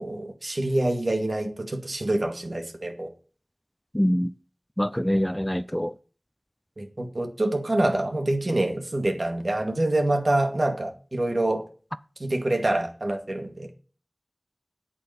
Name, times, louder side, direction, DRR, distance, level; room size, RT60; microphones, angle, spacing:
voice 1, 0.0-3.1 6.8-11.6 12.2-13.7, right 1 dB, 65° right, 2.1 m, -26 dB
voice 2, 3.9-4.3 4.8-5.9, equal, 10° left, 0.5 m, -24 dB
8.8 x 8.5 x 5.8 m
wide cardioid pair, 45°, 0 cm